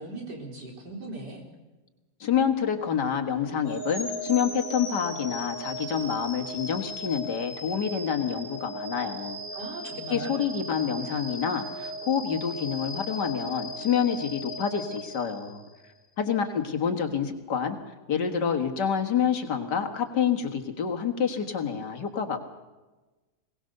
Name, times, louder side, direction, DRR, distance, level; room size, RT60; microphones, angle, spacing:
voice 1, 0.0-1.4 9.5-10.4, right 2 dB, 85° right, 0 dB, 4.6 m, -39 dB
voice 2, 2.2-9.4 10.1-15.6 16.2-17.8 18.1-22.4, left 7 dB, 90° left, 5 dB, 2.3 m, -27 dB
sound 1, 3.6-15.8, equal, 35° left, 3.4 m, -37 dB
22.0 x 18.5 x 6.6 m, 1.2 s
omnidirectional pair, 1.8 m